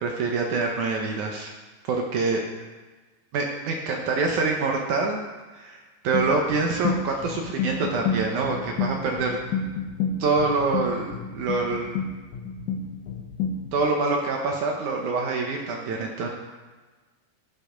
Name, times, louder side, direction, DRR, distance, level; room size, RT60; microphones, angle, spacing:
voice 1, 0.0-1.5 1.8-2.4 3.3-5.2 5.5-5.8 6.0-9.4 10.2-12.0 13.7-16.3, right 3 dB, 75° right, 1 dB, 1.8 m, -25 dB
sound 1, 6.1-13.8, left 4 dB, 75° left, 1.8 m, -30 dB
15.5 x 5.5 x 5.1 m, 1.3 s
omnidirectional pair, 4.8 m